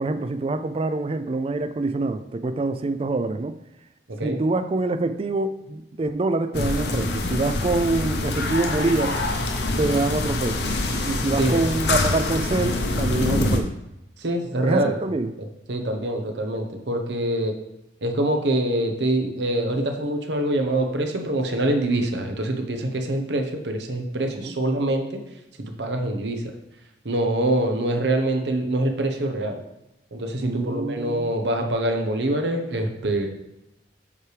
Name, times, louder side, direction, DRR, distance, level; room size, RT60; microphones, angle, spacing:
voice 1, 0.0-3.6 4.2-9.2 9.8-10.7 11.0-13.7 14.6-15.3 24.4-24.5 30.4-31.3, right 2 dB, 35° right, 11 dB, 0.4 m, -25 dB
sound 1, 6.5-13.6, left 2 dB, 65° left, 0.8 m, -25 dB
voice 2, 14.2-15.0 15.7-17.6 18.0-25.2 25.6-26.4 27.0-29.6 30.1-33.3, right 1 dB, 80° right, 4 dB, 1.0 m, -25 dB
7.2 x 4.8 x 3.4 m, 0.88 s
head